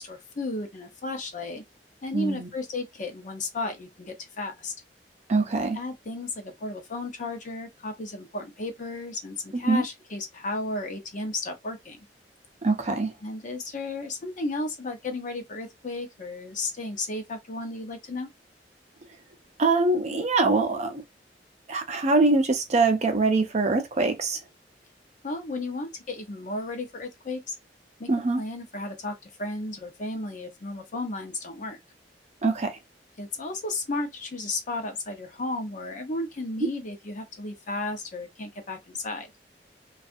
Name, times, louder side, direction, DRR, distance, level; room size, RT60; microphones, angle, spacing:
voice 1, 0.0-1.6 2.0-4.7 5.7-12.1 13.2-18.3 25.2-27.6 28.0-28.1 28.4-31.8 33.2-39.3, left 2 dB, 45° left, 0.7 m, -34 dB
voice 2, 2.1-2.5 5.3-5.8 9.5-9.8 12.6-13.1 19.6-21.0 21.7-24.4 28.1-28.4 32.4-32.8, right 3 dB, 40° right, 0.6 m, -23 dB
2.6 x 2.4 x 2.5 m
head